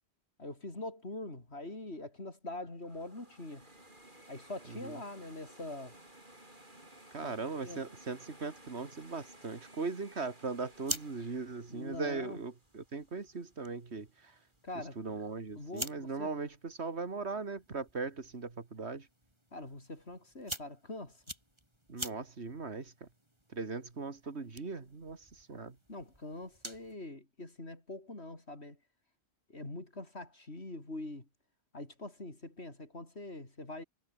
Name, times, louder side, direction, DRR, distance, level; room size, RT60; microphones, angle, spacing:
voice 1, 0.4-3.7 4.3-5.9 7.2-7.3 7.6-7.8 11.7-12.4 14.6-15.0 15.5-16.3 19.5-21.2 25.9-28.8 29.5-31.3 31.7-33.8, left 2 dB, 80° left, 5.4 m, -43 dB
sound 1, 2.8-13.8, right 1 dB, 50° right, 6.7 m, -57 dB
voice 2, 4.7-5.0 7.1-14.3 15.0-19.1 21.9-23.1 23.5-25.8, right 4 dB, 85° right, 2.5 m, -39 dB
sound 2, 10.5-27.0, right 1 dB, 25° right, 6.4 m, -48 dB
omnidirectional pair, 1.1 m